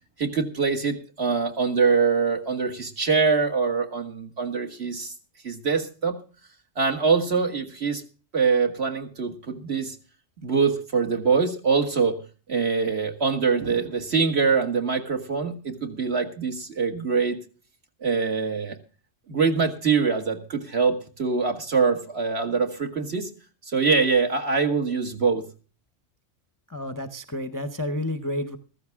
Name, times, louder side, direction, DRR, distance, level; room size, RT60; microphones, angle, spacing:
voice 1, 0.2-5.1 5.4-6.2 6.8-8.0 8.3-10.0 10.4-12.2 12.5-17.4 18.0-18.8 19.3-23.3 23.7-25.4, right 5 dB, 55° right, 5 dB, 2.2 m, -24 dB
voice 2, 26.7-28.6, left 1 dB, 20° left, 10 dB, 0.7 m, -30 dB
14.5 x 14.5 x 3.6 m, 0.36 s
omnidirectional pair, 1.3 m